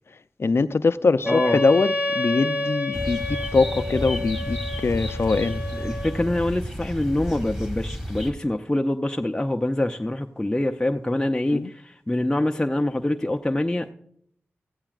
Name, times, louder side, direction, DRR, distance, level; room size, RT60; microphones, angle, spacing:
voice 1, 0.4-5.6 11.5-11.7, left 4 dB, 55° left, 13 dB, 0.5 m, -22 dB
Wind instrument woodwind instrument, 1.2-6.3, left 2 dB, 30° right, 3.6 m, -29 dB
voice 2, 1.3-1.6 5.7-11.7 12.1-13.9, left 1 dB, 15° left, 4 dB, 0.6 m, -25 dB
sound 1, 2.9-8.3, equal, 10° right, 2.4 m, -32 dB
15.5 x 15.0 x 2.5 m, 0.67 s
cardioid pair, 50°, 5 cm